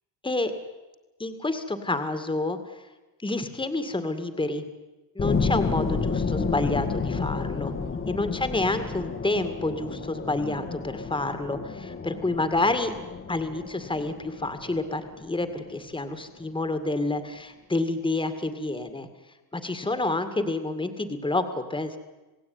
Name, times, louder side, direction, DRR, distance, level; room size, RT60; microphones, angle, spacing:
voice 1, 1.2-2.6 3.2-4.6 5.2-7.7 8.1-12.9 13.3-19.1 19.5-22.0, left 2 dB, 10° left, 9 dB, 2.2 m, -28 dB
sound 1, 5.2-16.0, left 4 dB, 25° left, 1.8 m, -31 dB
28.0 x 18.0 x 9.7 m, 1.1 s
cardioid pair, 135°, 45 cm